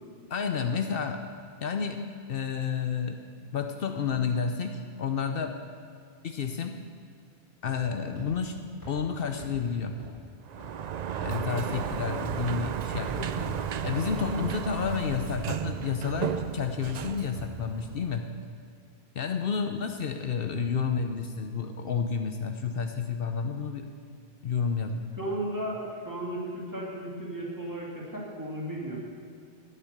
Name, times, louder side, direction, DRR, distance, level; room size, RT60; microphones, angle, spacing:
voice 1, 0.3-1.2 1.6-2.0 2.3-3.2 3.5-5.5 6.2-6.7 7.6-8.5 8.9-10.0 11.2-13.5 13.8-18.2 19.2-23.9 24.4-25.1, left 6 dB, 65° left, 6 dB, 0.9 m, -30 dB
sound 1, 7.6-7.9 8.2-8.3 8.8-8.9 9.4-9.5 10.0-10.1 10.6-10.7 11.2-11.4 11.8-11.9 12.3-12.4 12.9-13.0 13.4-13.5 14.0-14.1 14.6-14.7 15.2-15.4 15.8-15.9 16.3-16.4 16.8-16.9, right 1 dB, 20° left, 3.7 m, -45 dB
Sliding door, 10.5-18.2, right 8 dB, 55° right, 0.5 m, -33 dB
voice 2, 25.2-29.0, right 1 dB, 20° right, -4 dB, 2.5 m, -35 dB
12.0 x 9.0 x 6.6 m, 2.4 s
omnidirectional pair, 1.0 m